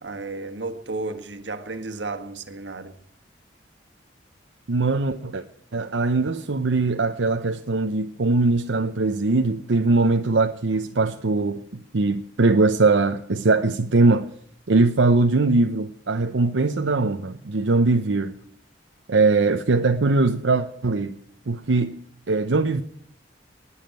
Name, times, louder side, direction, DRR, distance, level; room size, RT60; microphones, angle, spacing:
voice 1, 0.0-2.9, right 3 dB, 70° right, 1.6 m, -33 dB
voice 2, 4.7-5.4 5.7-11.6 11.9-14.3 14.7-18.3 19.1-21.1 21.5-22.0 22.3-22.8, right 3 dB, 85° right, 0.8 m, -21 dB
20.0 x 7.3 x 9.0 m
head